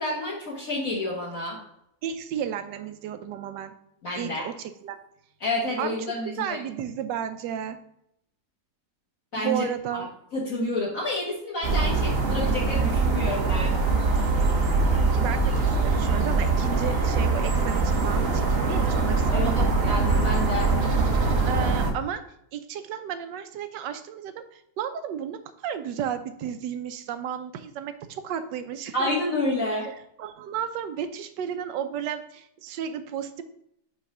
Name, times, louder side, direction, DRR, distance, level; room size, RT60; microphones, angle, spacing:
voice 1, 0.0-1.6 4.0-4.5 5.4-6.6 9.3-9.6 10.3-13.8 19.3-20.8 28.9-29.9, left 1 dB, 50° left, -6 dB, 1.7 m, -29 dB
voice 2, 2.0-3.7 4.2-5.0 5.8-5.9 6.4-7.8 9.3-10.1 15.1-20.0 21.4-22.2 22.5-29.1 29.8-33.4, right 9 dB, 80° right, 9 dB, 1.3 m, -33 dB
sound 1, 11.6-21.9, right 3 dB, 45° right, 0.9 m, -23 dB
5.4 x 4.4 x 4.9 m, 0.75 s
omnidirectional pair, 1.9 m